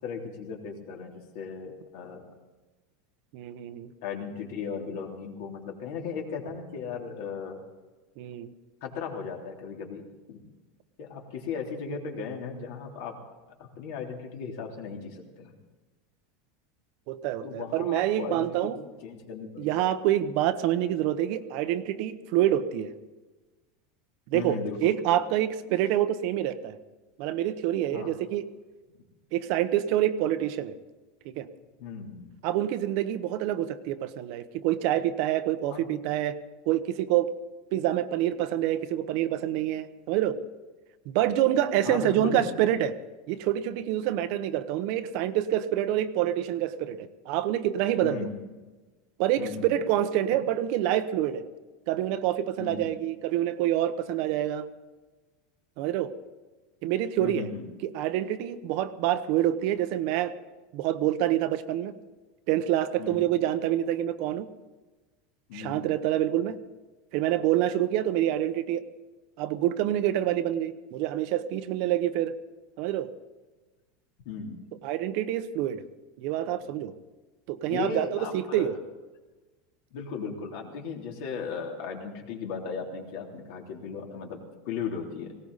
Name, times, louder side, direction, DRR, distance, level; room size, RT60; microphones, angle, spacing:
voice 1, 0.0-2.2 4.0-7.6 8.8-10.0 10.3-10.4 11.0-13.2 13.6-15.5 17.4-18.7 19.0-19.9 24.3-24.9 27.9-28.1 28.9-29.0 31.8-32.2 35.7-35.8 41.8-42.4 48.0-48.3 49.4-49.7 52.6-52.9 57.2-57.6 63.0-63.3 65.5-65.9 74.2-74.6 77.7-78.7 79.9-85.3, left 5 dB, 65° left, 1 dB, 3.2 m, -36 dB
voice 2, 3.3-3.9 8.2-8.5 17.1-18.8 19.6-22.9 24.3-26.8 27.2-28.5 29.3-30.7 31.2-31.5 32.4-36.4 36.7-37.3 37.7-40.4 41.1-42.9 43.3-48.3 49.2-51.4 51.9-54.7 55.8-56.1 56.8-57.5 57.8-60.3 60.7-62.0 62.5-64.5 65.5-66.6 67.1-68.8 69.4-72.3 72.8-73.1 74.8-75.8 76.2-76.9 77.5-78.7, right 12 dB, 55° right, 11 dB, 0.9 m, -27 dB
19.0 x 17.5 x 4.1 m, 1.2 s
supercardioid pair, 160°, 0 cm